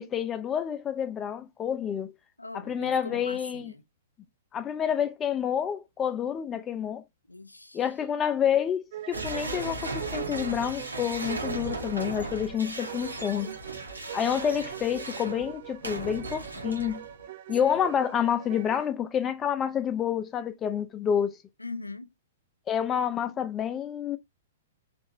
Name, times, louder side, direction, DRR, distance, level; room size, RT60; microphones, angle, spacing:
voice 1, 0.0-2.1 2.5-3.7 4.5-7.0 7.7-13.5 14.1-17.0 17.5-21.4 22.7-24.2, left 8 dB, 20° left, 0.5 m, -28 dB
voice 2, 2.4-3.8 7.3-7.9 14.1-14.5 14.9-15.4 17.6-17.9 21.6-22.1, left 3 dB, 90° left, 0.4 m, -42 dB
sound 1, 8.9-18.9, right 12 dB, 50° right, 0.4 m, -42 dB
sound 2, 9.1-17.3, right 2 dB, 80° right, 1.0 m, -37 dB
3.8 x 2.5 x 2.9 m
figure-of-eight pair, 110°, 0 cm